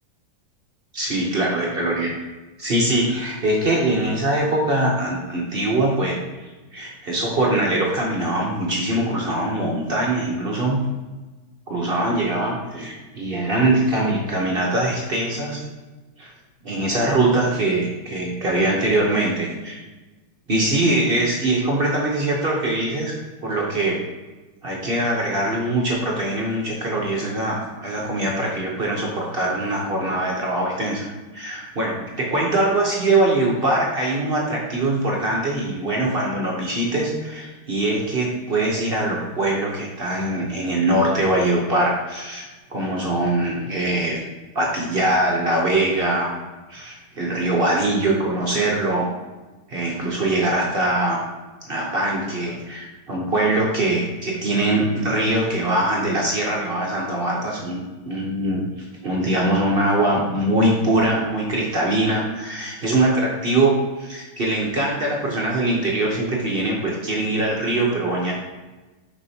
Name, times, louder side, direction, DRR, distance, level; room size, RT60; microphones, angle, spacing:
voice 1, 0.9-2.1 2.6-6.2 6.7-10.8 11.7-15.7 16.2-16.3 16.6-19.8 20.5-23.1 23.4-24.0 24.6-31.1 31.3-44.2 44.5-46.3 46.7-49.1 49.7-51.2 51.7-58.7 59.0-68.3, right 1 dB, 55° right, -2 dB, 0.6 m, -22 dB
6.6 x 5.3 x 2.8 m, 1.2 s
omnidirectional pair, 2.2 m